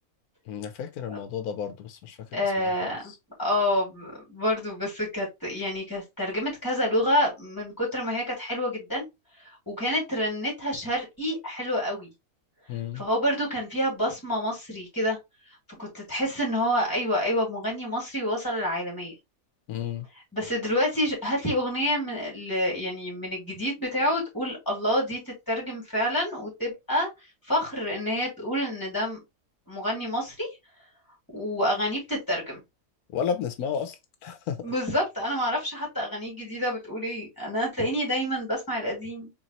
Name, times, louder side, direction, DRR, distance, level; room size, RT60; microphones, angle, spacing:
voice 1, 0.5-2.2 2.6-3.2 12.7-13.0 19.7-20.0 33.1-34.6, left 7 dB, 85° left, 1.1 m, -32 dB
voice 2, 2.3-3.1 3.4-9.1 9.7-12.1 12.9-15.2 15.8-19.1 20.3-27.1 27.5-29.2 29.7-30.5 31.3-32.6 34.6-39.3, equal, 15° left, 2.5 m, -28 dB
4.0 x 3.3 x 2.9 m
omnidirectional pair, 1.6 m